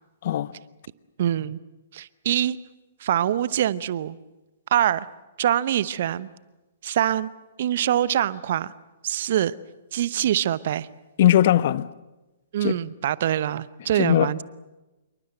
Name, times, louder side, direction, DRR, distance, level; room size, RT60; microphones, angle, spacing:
voice 1, 1.2-1.6 1.9-2.6 3.0-4.2 4.7-5.1 5.4-6.3 6.8-7.3 7.6-8.7 9.0-9.5 9.9-10.9 12.5-14.4, right 11 dB, 55° right, 0.9 m, -24 dB
voice 2, 11.2-11.9 12.6-12.7 14.0-14.3, left 12 dB, 50° left, 0.8 m, -19 dB
27.0 x 23.5 x 7.8 m
figure-of-eight pair, 120°, 0 cm